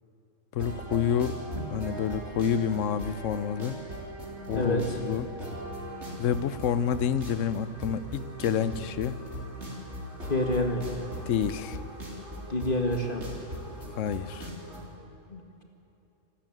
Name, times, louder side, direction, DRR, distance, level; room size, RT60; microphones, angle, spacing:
voice 1, 0.5-1.4 1.7-3.7 4.5-5.3 6.2-9.2 11.3-11.8 13.8-14.5, left 8 dB, 75° left, 14 dB, 1.1 m, -28 dB
sound 1, 0.6-14.8, right 1 dB, 60° right, 4.0 m, -39 dB
voice 2, 4.5-5.0 10.3-10.8 12.5-13.2 15.3-15.4, left 1 dB, 40° left, 3 dB, 2.0 m, -27 dB
27.0 x 13.0 x 9.1 m, 3.0 s
omnidirectional pair, 1.3 m